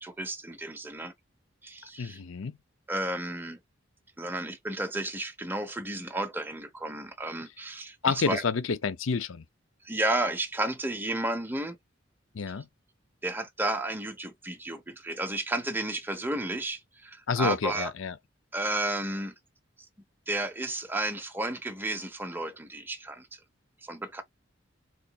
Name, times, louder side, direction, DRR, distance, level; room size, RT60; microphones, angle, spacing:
voice 1, 0.0-1.1 1.6-2.2 2.9-3.6 4.2-8.4 9.8-11.8 13.2-17.9 18.5-19.3 20.3-23.3 23.8-24.2, right 2 dB, 10° right, 0.9 m, -32 dB
voice 2, 2.0-2.6 8.0-9.4 12.3-12.7 17.3-18.1, left 5 dB, 85° left, 0.6 m, -29 dB
4.3 x 4.0 x 2.3 m
head